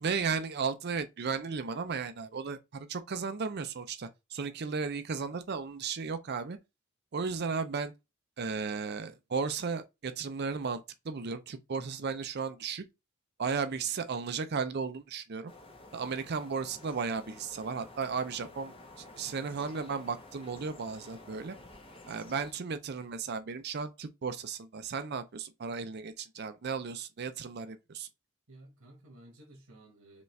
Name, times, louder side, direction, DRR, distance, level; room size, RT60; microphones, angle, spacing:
voice 1, 0.0-6.6 7.1-7.9 8.4-12.8 13.4-15.5 15.9-21.6 22.1-28.1, right 5 dB, 50° right, 0.5 m, -35 dB
sound 1, 15.5-22.5, left 2 dB, 25° left, 0.8 m, -52 dB
voice 2, 28.5-30.2, right 1 dB, 80° right, 1.6 m, -55 dB
5.1 x 2.4 x 3.2 m
head